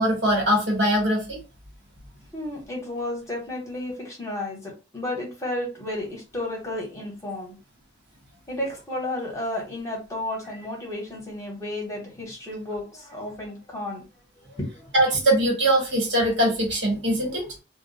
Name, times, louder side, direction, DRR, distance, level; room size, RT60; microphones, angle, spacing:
voice 1, 0.0-1.4 14.9-17.6, right 1 dB, 75° right, 0 dB, 0.9 m, -22 dB
voice 2, 2.3-7.6 8.5-14.0 14.5-14.9, left 1 dB, 15° left, -2 dB, 0.9 m, -32 dB
2.3 x 2.2 x 2.6 m, 0.30 s
head